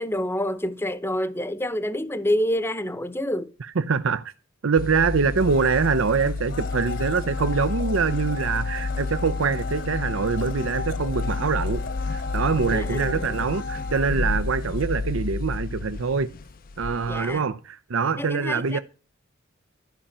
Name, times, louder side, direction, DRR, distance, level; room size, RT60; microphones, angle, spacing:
voice 1, 0.0-3.5 12.7-13.4 17.1-17.4 18.2-18.8, left 1 dB, 10° left, 0.8 m, -27 dB
voice 2, 3.8-4.3 4.6-16.3 16.8-18.8, right 5 dB, 75° right, 0.6 m, -24 dB
sound 1, 4.8-17.4, left 3 dB, 45° left, 0.5 m, -30 dB
Domestic sounds home sounds, 5.3-15.3 15.6-15.7, left 4 dB, 60° left, 1.4 m, -36 dB
13.0 x 5.5 x 8.6 m
head